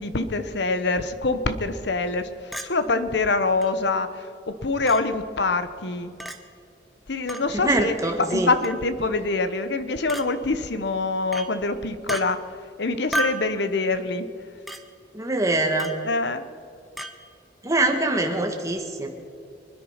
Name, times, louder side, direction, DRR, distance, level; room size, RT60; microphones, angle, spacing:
voice 1, 0.0-4.3 4.6-6.1 7.1-12.4 12.8-14.3 16.0-16.4, left 3 dB, 60° left, 11 dB, 1.1 m, -25 dB
Chink clink, 2.5-2.7 3.6-3.7 4.9-5.0 6.2-6.4 7.3-7.5 8.6-8.9 10.1-10.3 11.3-11.5 12.1-12.2 13.1-13.5 14.7-14.8 15.8-16.0 17.0-17.1, right 1 dB, ahead, 1.0 m, -30 dB
voice 2, 7.5-8.5 15.1-15.9 17.6-19.1, right 2 dB, 15° right, 3 dB, 1.7 m, -23 dB
25.0 x 9.9 x 5.8 m, 2.5 s
head